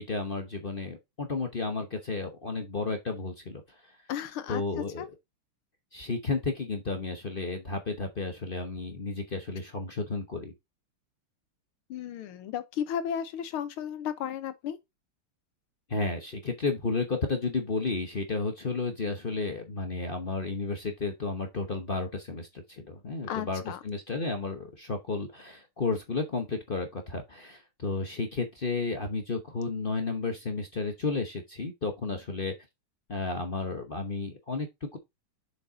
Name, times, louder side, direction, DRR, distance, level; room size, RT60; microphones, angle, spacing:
voice 1, 0.0-3.6 4.5-5.1 5.9-10.5 15.9-32.5 33.1-35.0, left 3 dB, 40° left, 0.8 m, -32 dB
voice 2, 4.1-5.1 11.9-14.8 23.3-23.8, left 9 dB, 85° left, 1.8 m, -34 dB
6.8 x 5.4 x 3.9 m
omnidirectional pair, 2.3 m